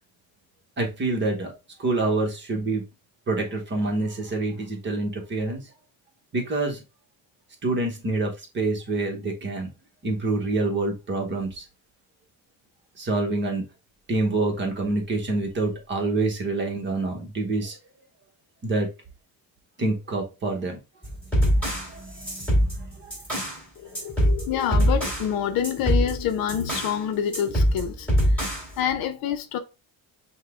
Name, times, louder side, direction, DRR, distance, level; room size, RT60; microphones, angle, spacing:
voice 1, 0.8-1.5 1.8-2.8 3.3-5.6 6.3-6.8 7.6-9.7 10.0-11.6 13.0-13.7 14.1-17.8 18.6-18.9 19.8-20.8 21.6-23.1, right 2 dB, 30° right, 1.1 m, -27 dB
sound 1, 21.0-23.6 23.9-25.3 25.6-27.0 27.3-28.7, equal, 5° left, 2.3 m, -23 dB
voice 2, 23.8-29.6, left 9 dB, 65° left, 0.7 m, -27 dB
5.7 x 2.3 x 3.4 m
cardioid pair, 145°, 38 cm